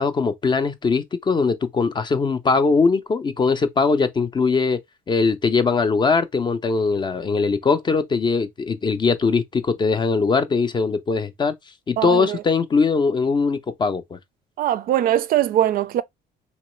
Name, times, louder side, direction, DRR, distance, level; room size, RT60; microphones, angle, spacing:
voice 1, 0.0-4.8 5.1-11.5 11.9-14.2, left 4 dB, 25° left, 0.5 m, -21 dB
voice 2, 12.0-12.4 14.6-16.0, right 11 dB, 60° right, 0.4 m, -21 dB
3.1 x 2.9 x 3.0 m
cardioid pair, 110°, 17 cm